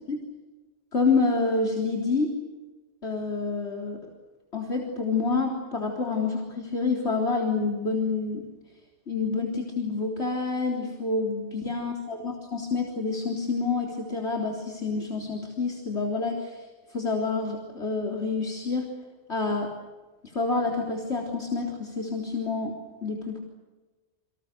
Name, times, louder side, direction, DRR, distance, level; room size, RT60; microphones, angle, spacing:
voice 1, 0.9-2.3 3.0-4.0 4.5-8.4 9.1-16.6 16.9-18.8 19.3-19.7 20.3-22.7 23.0-23.4, left 4 dB, 75° left, 0 dB, 4.0 m, -28 dB
29.5 x 25.5 x 6.7 m, 1.2 s
omnidirectional pair, 1.2 m